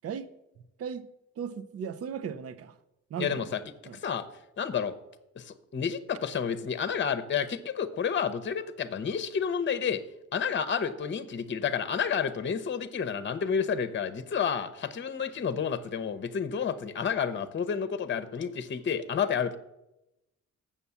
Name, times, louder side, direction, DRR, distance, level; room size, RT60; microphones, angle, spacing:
voice 1, 1.4-2.8 3.1-3.6 3.9-4.0, right 7 dB, 50° right, 0.7 m, -36 dB
voice 2, 3.2-3.6 4.0-4.3 4.6-5.0 5.3-10.0 10.3-19.6, left 7 dB, 40° left, 0.8 m, -30 dB
7.2 x 6.9 x 7.0 m
cardioid pair, 90°, 30 cm